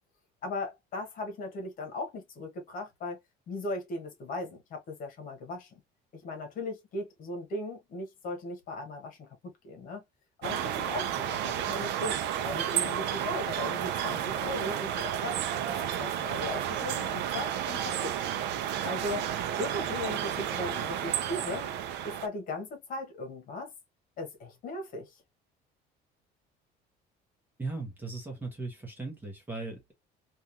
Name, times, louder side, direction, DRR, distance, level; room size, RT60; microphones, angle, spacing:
voice 1, 0.4-3.2 3.5-5.7 6.1-10.0 10.4-12.2 12.4-15.4 15.7-18.1 18.8-19.3 19.6-21.7 22.0-23.7 24.2-25.2, left 2 dB, 45° left, 1.6 m, -38 dB
sound 1, 10.4-22.3, right 10 dB, 65° right, 0.7 m, -32 dB
voice 2, 27.6-29.9, right 3 dB, 10° right, 1.2 m, -38 dB
3.6 x 2.7 x 2.8 m
cardioid pair, 170°, 19 cm